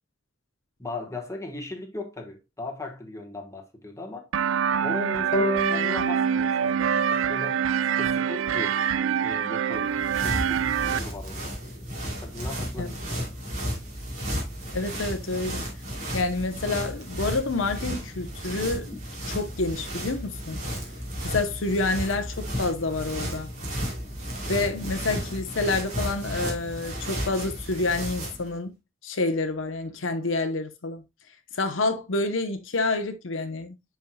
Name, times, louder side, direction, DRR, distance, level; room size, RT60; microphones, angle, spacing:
voice 1, 0.8-4.3 4.7-7.6 8.0-8.8 9.2-9.9 10.2-11.5 12.2-13.3, left 2 dB, 15° left, 1.3 m, -37 dB
sound 1, 4.3-11.0, right 8 dB, 75° right, 0.4 m, -25 dB
sound 2, 5.3-8.6, equal, 45° left, 0.8 m, -33 dB
sound 3, 9.7-28.5, equal, 40° right, 2.6 m, -33 dB
voice 2, 14.7-15.7 16.1-19.0 19.3-20.6 21.2-23.5 24.5-28.7 29.0-31.0 31.6-33.8, left 3 dB, 75° left, 0.8 m, -28 dB
10.0 x 4.6 x 2.2 m
head